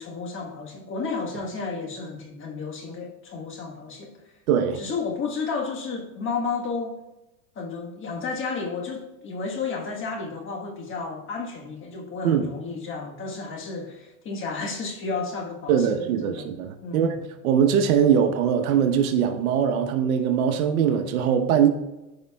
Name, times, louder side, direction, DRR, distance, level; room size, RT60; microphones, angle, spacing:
voice 1, 0.0-4.1 4.8-7.0 7.5-16.5 16.8-17.2, left 4 dB, 30° left, 1 dB, 1.4 m, -32 dB
voice 2, 4.5-4.8 12.2-12.5 15.7-17.1 17.4-21.7, right 8 dB, 75° right, 6 dB, 1.1 m, -21 dB
14.5 x 5.5 x 2.4 m, 1.0 s
supercardioid pair, 125°, 43 cm